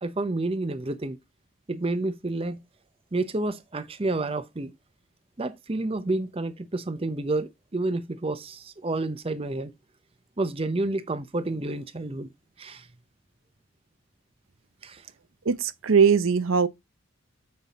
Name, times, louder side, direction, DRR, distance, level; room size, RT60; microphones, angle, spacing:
voice 1, 0.0-1.2 1.7-2.6 3.1-4.7 5.4-9.7 10.4-12.3 12.6-12.9 14.8-15.0, right 2 dB, 25° right, 0.6 m, -29 dB
voice 2, 15.5-16.7, right 6 dB, 70° right, 0.6 m, -20 dB
7.5 x 5.3 x 4.0 m
head